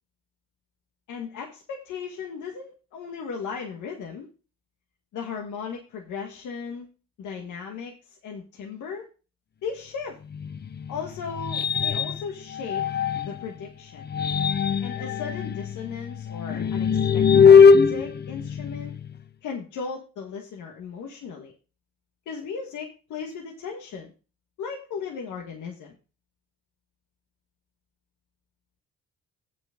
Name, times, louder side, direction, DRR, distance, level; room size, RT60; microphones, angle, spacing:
voice 1, 1.1-4.3 5.1-6.9 7.2-9.1 9.6-10.2 10.9-12.9 13.2-14.1 14.8-18.9 19.4-21.5 22.3-24.1 24.6-26.0, left 6 dB, 80° left, 1 dB, 1.7 m, -36 dB
sound 1, 10.3-13.5 14.0-19.2, left 6 dB, 35° left, 0.7 m, -21 dB
8.3 x 6.1 x 5.1 m, 0.33 s
cardioid pair, 90°, 30 cm